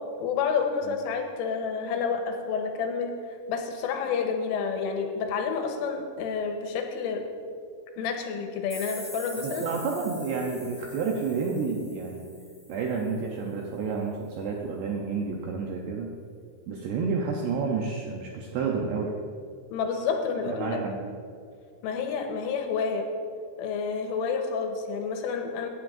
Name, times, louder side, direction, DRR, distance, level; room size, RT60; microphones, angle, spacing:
voice 1, 0.2-3.1 3.5-7.2 8.0-9.6 19.7-20.8 21.8-23.1 23.6-25.7, left 5 dB, 80° left, 4 dB, 3.4 m, -29 dB
sound 1, 8.7-13.4, equal, 35° right, 1.0 m, -44 dB
voice 2, 9.4-12.2 12.7-16.1 16.7-19.1 20.5-21.1, right 5 dB, 80° right, 0 dB, 2.5 m, -30 dB
16.0 x 11.0 x 2.6 m, 2.3 s
omnidirectional pair, 5.8 m